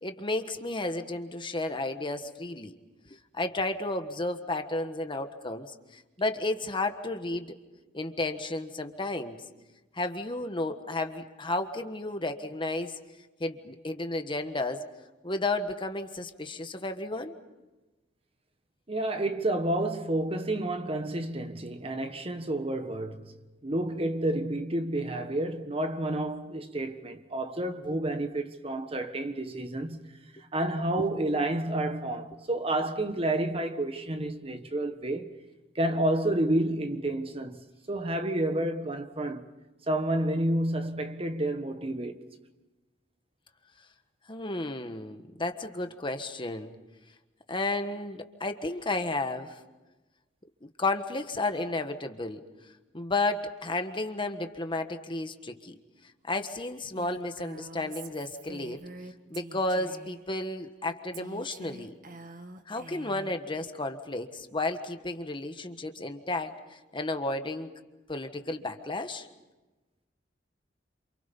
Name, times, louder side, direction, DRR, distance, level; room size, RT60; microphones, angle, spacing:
voice 1, 0.0-2.8 3.3-7.5 7.9-9.4 9.9-13.0 13.4-14.8 15.2-17.3 44.3-46.7 47.5-49.6 50.6-52.4 52.9-55.8 56.3-58.8 59.3-61.9 62.7-67.7 68.1-69.3, left 2 dB, 25° left, 1.5 m, -32 dB
voice 2, 18.9-30.2 30.5-35.3 35.7-39.5 39.9-42.4, right 1 dB, 30° right, 1.4 m, -30 dB
Female speech woman speaking, 57.0-60.2 61.1-63.4, right 2 dB, 50° right, 1.6 m, -46 dB
29.0 x 27.5 x 5.5 m
head